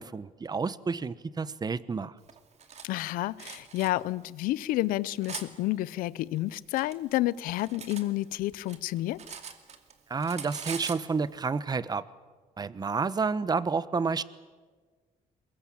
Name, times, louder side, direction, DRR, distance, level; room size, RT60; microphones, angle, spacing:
voice 1, 0.0-2.1 10.1-12.0 12.6-14.2, right 4 dB, 30° right, 1.1 m, -30 dB
Cutlery silverware, 2.3-2.9 3.4-3.9 4.6-5.5 6.4-8.1 8.4-9.9 10.2-11.1, right 7 dB, 50° right, 2.6 m, -42 dB
voice 2, 2.8-9.2, left 16 dB, 90° left, 0.7 m, -30 dB
23.0 x 22.0 x 8.8 m
cardioid pair, 100°, 14 cm